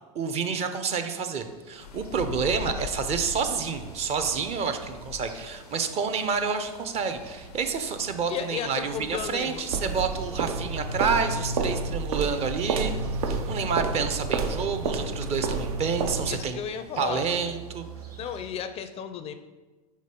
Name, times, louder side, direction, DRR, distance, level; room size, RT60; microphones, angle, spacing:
voice 1, 0.1-12.9 13.2-16.6 17.0-17.8, right 5 dB, 35° right, 8 dB, 0.6 m, -29 dB
sound 1, 1.3-18.5, right 6 dB, 90° right, 1.2 m, -47 dB
sound 2, 1.8-10.0, left 7 dB, 90° left, 0.5 m, -42 dB
voice 2, 8.3-9.6 16.3-17.3 18.2-19.3, left 8 dB, 30° left, 10 dB, 0.4 m, -34 dB
sound 3, 9.7-16.5, right 3 dB, 75° right, 0.7 m, -29 dB
5.2 x 3.9 x 5.2 m, 1.3 s
hypercardioid pair, 100°, 19 cm